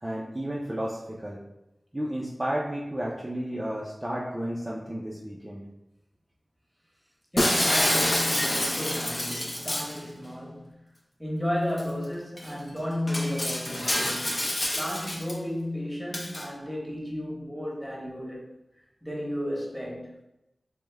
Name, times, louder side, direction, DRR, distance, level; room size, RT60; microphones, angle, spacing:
voice 1, 0.0-1.4 1.9-5.6, equal, 20° right, -5 dB, 0.4 m, -32 dB
voice 2, 7.3-10.7 11.2-14.5 14.7-18.5 19.0-20.1, left 1 dB, 5° left, -4 dB, 0.9 m, -33 dB
Shatter, 7.4-10.0 11.8-11.9 12.4-12.5 13.1-15.3 16.1-16.4, left 1 dB, 40° left, 0.6 m, -27 dB
3.3 x 2.1 x 3.2 m, 0.88 s
wide cardioid pair, 80°, 0 cm